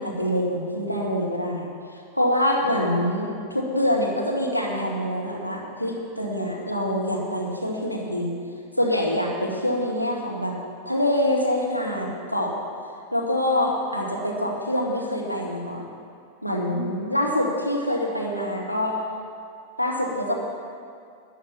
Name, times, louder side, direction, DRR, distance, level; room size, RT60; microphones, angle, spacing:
voice 1, 0.0-8.3 8.8-10.6 10.9-12.5 13.1-15.9 16.4-19.0 19.8-20.3, left 1 dB, 90° left, -2 dB, 1.9 m, -25 dB
13.0 x 10.0 x 7.1 m, 2.4 s
figure-of-eight pair, 90°, 0 cm